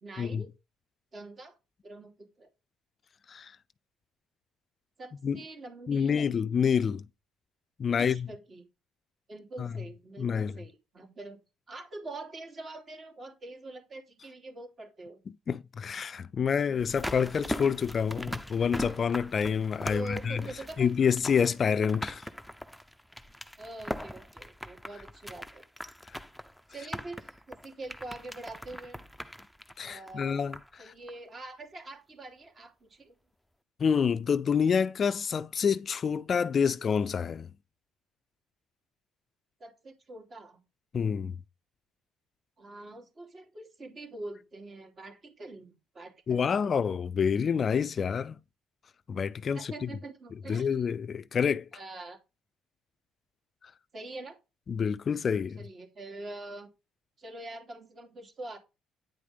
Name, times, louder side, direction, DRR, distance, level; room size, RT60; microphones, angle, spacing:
voice 1, 0.0-0.5 1.1-1.5 1.8-2.5 5.0-6.4 8.0-8.7 9.3-11.4 11.7-15.2 19.9-20.9 21.3-21.4 23.6-25.6 26.7-29.0 29.8-30.4 30.8-33.1 39.6-40.6 42.6-46.8 49.5-50.9 51.7-52.2 53.9-54.4 55.6-56.7 57.2-58.6, right 2 dB, 40° right, 2.9 m, -44 dB
voice 2, 5.9-7.0 7.8-8.3 9.6-9.7 10.2-10.5 15.5-20.4 20.8-22.2 29.8-30.6 30.8-30.9 33.8-37.5 40.9-41.3 46.3-48.4 49.1-49.9 50.5-51.7 54.7-55.6, left 6 dB, 45° left, 0.4 m, -27 dB
sound 1, 16.8-30.8 31.1-31.2, equal, ahead, 0.6 m, -40 dB
9.4 x 5.0 x 5.1 m
cardioid pair, 85°, 0 cm